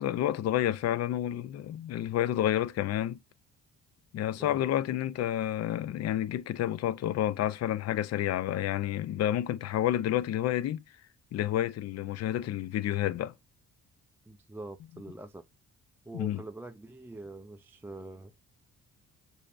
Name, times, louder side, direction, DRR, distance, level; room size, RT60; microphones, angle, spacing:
voice 1, 0.0-3.2 4.1-10.8 11.3-13.3 16.1-16.4, left 12 dB, 60° left, 0.5 m, -29 dB
voice 2, 14.3-15.5 16.1-18.3, right 2 dB, 5° right, 0.3 m, -44 dB
6.4 x 2.6 x 2.5 m
cardioid pair, 90°, 30 cm